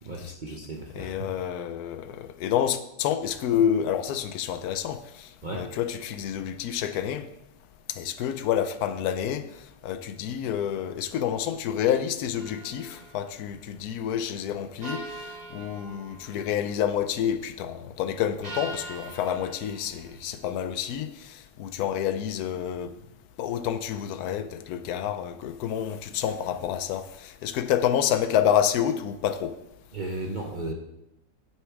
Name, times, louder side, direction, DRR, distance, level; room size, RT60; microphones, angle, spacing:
voice 1, 0.0-1.1 5.4-5.6 29.9-30.7, right 2 dB, 50° right, -1 dB, 0.6 m, -34 dB
voice 2, 0.9-7.3 7.9-9.5 9.8-22.9 23.4-29.5, left 9 dB, 70° left, 9 dB, 1.0 m, -28 dB
sound 1, 12.4-13.3 14.8-16.6 18.4-20.1, right 2 dB, 30° right, 0.9 m, -41 dB
6.5 x 6.2 x 4.7 m, 0.87 s
omnidirectional pair, 1.9 m